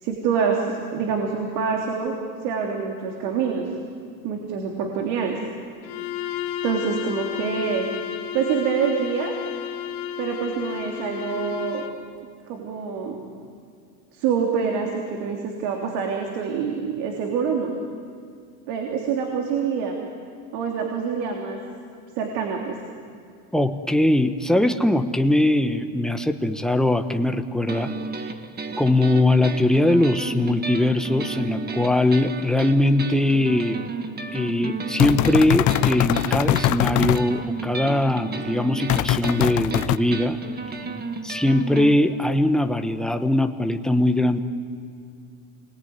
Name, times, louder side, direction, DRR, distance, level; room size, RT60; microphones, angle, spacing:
voice 1, 0.0-2.1 2.4-3.7 4.2-5.4 6.6-7.9 8.3-9.3 10.2-11.8 12.5-13.2 14.1-17.8 18.7-20.0 20.5-21.6 22.1-22.8, right 6 dB, 70° right, 1 dB, 3.3 m, -26 dB
Bowed string instrument, 5.8-12.0, left 9 dB, 70° left, 2.9 m, -32 dB
voice 2, 23.5-27.9 28.8-33.9 34.3-40.4 41.2-44.4, left 1 dB, ahead, 6 dB, 1.1 m, -21 dB
sound 1, 27.7-41.9, right 4 dB, 20° right, 1.5 m, -33 dB
sound 2, 35.0-37.2 38.9-40.0, left 14 dB, 45° left, 0.7 m, -21 dB
28.5 x 21.5 x 9.6 m, 2.4 s
cardioid pair, 135°, 42 cm